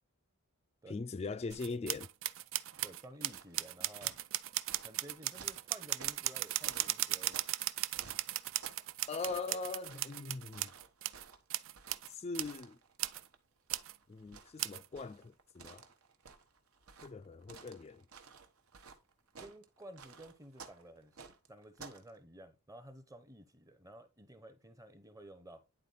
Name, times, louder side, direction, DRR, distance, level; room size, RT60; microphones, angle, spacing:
voice 1, 0.9-2.1 9.1-10.7 12.1-12.8 14.1-15.9 17.0-18.0, left 4 dB, 25° left, 0.3 m, -41 dB
sound 1, 1.5-11.2 11.5-12.1 12.3-12.6 13.0-13.2 13.7-14.0 14.6-14.9, right 14 dB, 60° right, 0.4 m, -37 dB
sound 2, 2.7-3.7 4.0-7.6 7.9-8.9 9.2-13.4 13.7-22.1, right 5 dB, 75° right, 1.1 m, -54 dB
voice 2, 2.8-4.2 4.8-7.4 19.4-21.2 21.5-25.6, right 1 dB, 15° right, 0.7 m, -53 dB
9.9 x 4.1 x 4.0 m
head